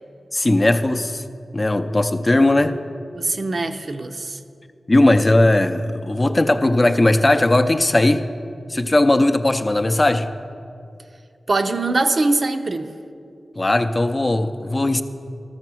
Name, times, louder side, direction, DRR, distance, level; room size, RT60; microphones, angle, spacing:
voice 1, 0.3-1.2 1.5-2.7 4.9-8.2 8.7-10.3 13.6-15.0, left 1 dB, 30° left, 8 dB, 0.5 m, -18 dB
voice 2, 3.1-4.4 11.5-12.9, right 2 dB, 55° right, 7 dB, 0.6 m, -22 dB
13.0 x 6.7 x 6.2 m, 2.4 s
cardioid pair, 60°, 0 cm